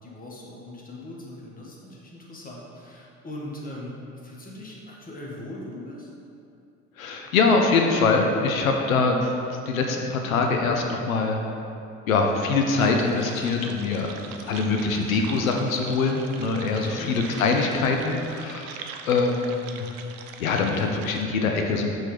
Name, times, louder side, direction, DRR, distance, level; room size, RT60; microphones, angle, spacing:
voice 1, 0.0-6.1 16.8-17.1, left 1 dB, 20° left, -4 dB, 1.3 m, -40 dB
voice 2, 7.0-9.3 9.7-11.4 12.1-19.9 20.4-21.9, left 4 dB, 80° left, 2 dB, 0.6 m, -23 dB
sound 1, 12.7-21.2, right 6 dB, 55° right, 0.5 m, -42 dB
5.2 x 3.6 x 5.0 m, 2.7 s
figure-of-eight pair, 60°, 40 cm